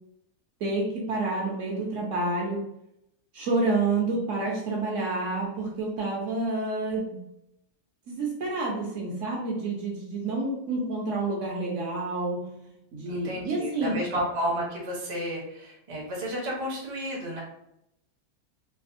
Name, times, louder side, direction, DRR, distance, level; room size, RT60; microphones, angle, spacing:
voice 1, 0.6-2.6 3.3-7.2 8.1-14.0, right 3 dB, 65° right, -2 dB, 0.9 m, -29 dB
voice 2, 13.1-17.4, equal, 35° right, -3 dB, 0.5 m, -32 dB
3.2 x 2.0 x 2.5 m, 0.81 s
omnidirectional pair, 1.6 m